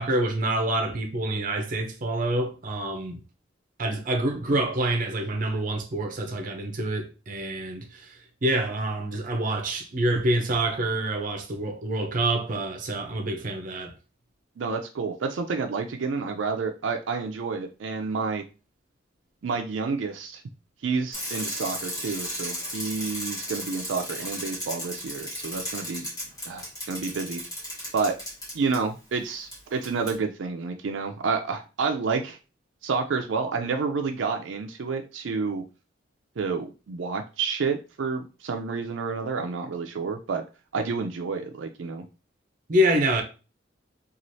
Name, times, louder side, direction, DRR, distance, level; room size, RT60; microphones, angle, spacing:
voice 1, 0.0-3.2 3.8-8.0 8.4-13.9 42.7-43.2, right 1 dB, 45° right, 0.6 m, -26 dB
voice 2, 14.6-18.4 19.4-20.4 20.8-26.0 26.5-27.4 27.9-28.1 28.5-32.4 32.8-35.6 36.4-40.4 40.7-42.0, right 4 dB, 90° right, 0.4 m, -29 dB
Bicycle, 21.1-28.8 29.5-29.6 29.8-30.1, equal, 20° left, 1.2 m, -35 dB
3.1 x 2.4 x 2.6 m
head